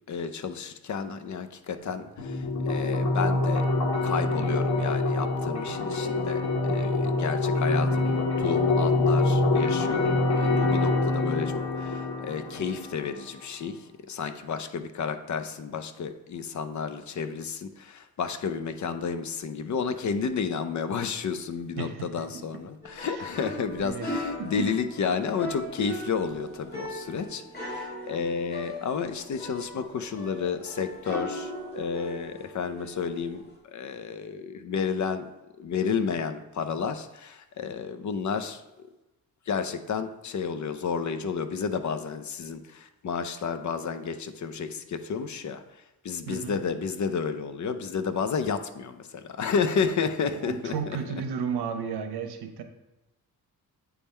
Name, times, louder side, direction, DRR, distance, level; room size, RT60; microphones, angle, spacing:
voice 1, 0.1-3.7 4.0-35.3 35.6-38.9 39.5-45.6 46.0-51.0, left 6 dB, 50° left, 10 dB, 0.6 m, -31 dB
sound 1, 2.2-13.2, left 2 dB, 90° left, 1.8 m, -25 dB
voice 2, 21.8-22.6 23.1-23.2 23.8-24.1 24.4-24.7 46.3-46.6 50.2-52.6, right 6 dB, 85° right, 6 dB, 0.9 m, -34 dB
sound 2, 22.8-33.5, left 1 dB, 25° left, 1.9 m, -38 dB
8.4 x 3.6 x 4.3 m, 0.99 s
cardioid pair, 115°, 38 cm